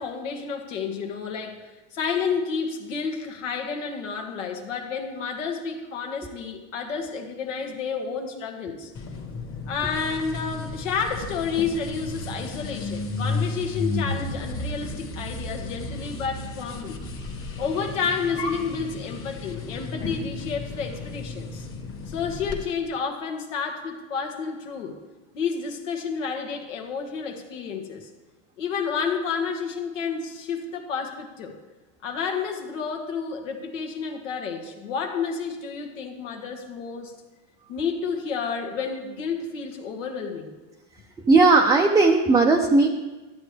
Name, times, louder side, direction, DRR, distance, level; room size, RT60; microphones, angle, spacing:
voice 1, 0.0-8.9 9.7-17.0 17.6-21.7 22.1-25.0 25.3-28.1 28.6-31.5 32.0-37.1 37.7-40.5, left 5 dB, 85° left, 3 dB, 1.5 m, -30 dB
sound 1, 8.9-22.6, left 3 dB, 35° left, 1.4 m, -33 dB
voice 2, 41.3-42.9, right 3 dB, 10° right, 2 dB, 0.4 m, -17 dB
12.0 x 8.3 x 3.3 m, 1.2 s
supercardioid pair, 110°, 37 cm